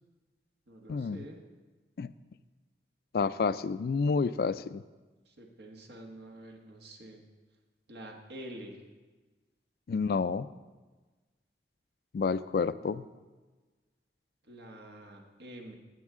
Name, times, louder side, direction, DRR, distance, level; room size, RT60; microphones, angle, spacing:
voice 1, 0.7-1.4 5.3-7.2 7.9-8.8 14.4-15.8, right 1 dB, 80° right, 2 dB, 1.4 m, -47 dB
voice 2, 3.1-4.8 9.9-10.5 12.1-13.1, left 5 dB, 55° left, 15 dB, 0.3 m, -29 dB
15.0 x 8.0 x 3.7 m, 1.3 s
head